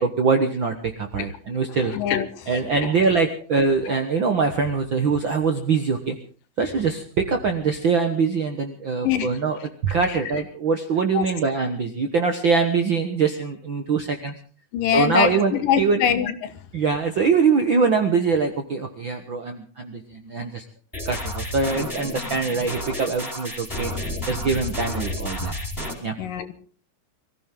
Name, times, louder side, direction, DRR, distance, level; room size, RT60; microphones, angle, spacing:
voice 1, 0.0-1.9 2.5-6.2 6.6-14.3 14.9-16.0 16.7-20.6 21.0-23.9 24.3-25.6 26.0-26.1, right 5 dB, 60° right, 5 dB, 1.3 m, -23 dB
voice 2, 1.9-2.5 9.0-9.3 11.1-11.3 14.7-16.5 26.2-26.5, left 9 dB, 75° left, 11 dB, 2.8 m, -23 dB
sound 1, 20.9-25.9, left 1 dB, 5° left, 4.1 m, -31 dB
23.5 x 15.5 x 3.8 m, 0.42 s
omnidirectional pair, 4.0 m